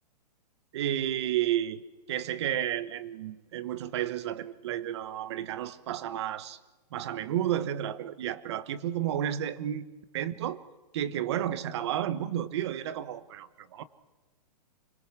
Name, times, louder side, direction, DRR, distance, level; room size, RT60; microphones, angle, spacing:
voice 1, 0.7-1.8 2.1-6.6 6.9-9.9 10.1-10.6 10.9-13.8, right 11 dB, 40° right, 1.1 m, -31 dB
25.0 x 22.0 x 6.0 m
hypercardioid pair, 165°, 21 cm